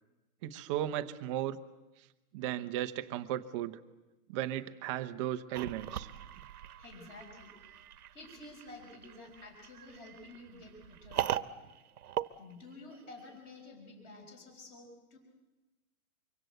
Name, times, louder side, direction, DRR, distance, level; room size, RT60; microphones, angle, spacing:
voice 1, 0.4-1.6 2.3-3.8 4.3-6.1, right 12 dB, 20° right, 9 dB, 0.8 m, -35 dB
sound 1, 5.5-13.2, right 11 dB, 85° right, 1.3 m, -40 dB
voice 2, 6.8-11.3 12.3-15.2, left 2 dB, 25° left, 2 dB, 5.6 m, -51 dB
25.0 x 24.5 x 8.0 m, 1.1 s
hypercardioid pair, 170°, 44 cm